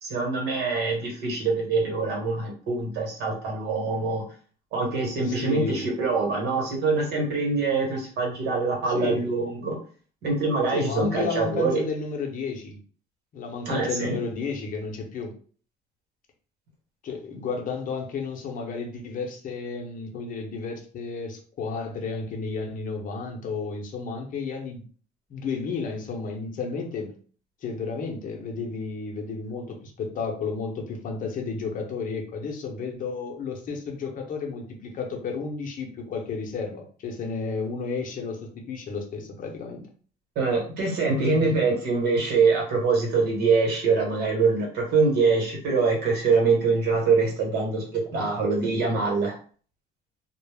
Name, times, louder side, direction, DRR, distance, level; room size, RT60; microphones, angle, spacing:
voice 1, 0.0-4.2 4.7-9.8 10.2-11.8 13.6-14.1 40.3-49.3, right 4 dB, 75° right, -1 dB, 1.1 m, -24 dB
voice 2, 5.2-5.9 8.9-9.3 10.7-12.8 13.3-15.4 17.0-24.8 25.3-27.1 27.6-39.9 41.0-41.7, left 4 dB, 55° left, 2 dB, 0.7 m, -32 dB
2.2 x 2.0 x 3.3 m, 0.42 s
cardioid pair, 110°, 17 cm